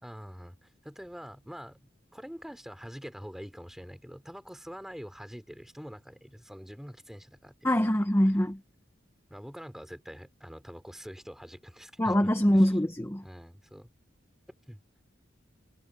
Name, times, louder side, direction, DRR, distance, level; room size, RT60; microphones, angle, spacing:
voice 1, 0.0-7.5 7.8-7.9 9.3-12.7 13.2-13.9 14.7-14.8, equal, ahead, 3.3 m, -45 dB
voice 2, 7.6-8.6 12.0-13.2, equal, 15° left, 1.1 m, -24 dB
head